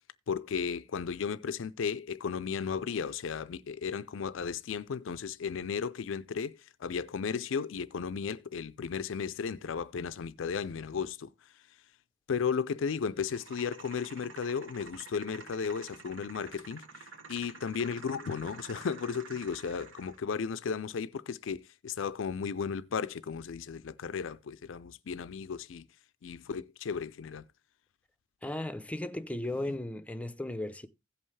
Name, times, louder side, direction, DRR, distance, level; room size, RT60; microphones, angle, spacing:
voice 1, 0.3-11.6 12.3-25.9 26.2-27.5, left 6 dB, 75° left, 0.4 m, -35 dB
sound 1, 13.2-20.2, right 4 dB, 70° right, 1.5 m, -49 dB
voice 2, 28.4-30.9, left 1 dB, 5° left, 0.6 m, -36 dB
16.5 x 5.5 x 3.2 m
head